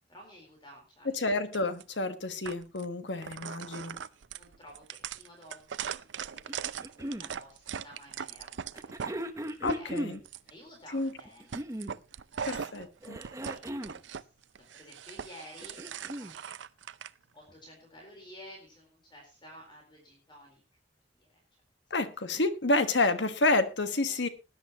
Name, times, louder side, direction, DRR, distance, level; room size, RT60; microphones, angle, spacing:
voice 1, 0.1-1.3 4.3-9.9 10.4-11.6 12.1-12.8 13.2-14.2 14.5-16.5 17.3-20.6 21.1-21.4 24.1-24.2, equal, 25° left, 1 dB, 4.1 m, -53 dB
voice 2, 1.1-4.0 9.6-10.2 10.9-11.1 12.5-13.2 21.9-24.3, left 2 dB, 80° left, 10 dB, 1.5 m, -29 dB
sound 1, 1.5-1.8 2.4-2.8 3.2-9.1 9.5-10.5 11.0-11.2 11.5-14.2 14.5-17.1, right 7 dB, 90° right, 0.5 m, -40 dB
sound 2, 6.5-7.3 8.8-10.2 11.2-12.0 13.0-14.0 15.4-16.3 17.5-17.6, equal, 15° right, 1.0 m, -37 dB
19.5 x 10.5 x 3.0 m, 0.29 s
head